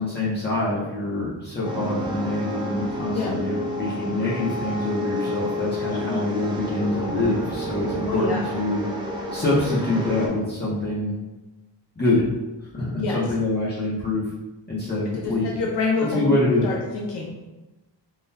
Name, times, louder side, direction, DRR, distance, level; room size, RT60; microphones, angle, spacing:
voice 1, 0.0-8.8 9.3-11.1 12.0-12.2 12.7-14.2 14.7-15.5 16.0-16.6, left 2 dB, 25° left, -10 dB, 0.7 m, -25 dB
sound 1, 1.6-10.3, equal, 10° right, 0.4 m, -30 dB
voice 2, 5.9-6.2 8.1-8.4 13.0-13.2 15.2-17.5, left 4 dB, 65° left, -2 dB, 0.5 m, -27 dB
3.7 x 2.2 x 2.7 m, 1.1 s
wide cardioid pair, 155°, 44 cm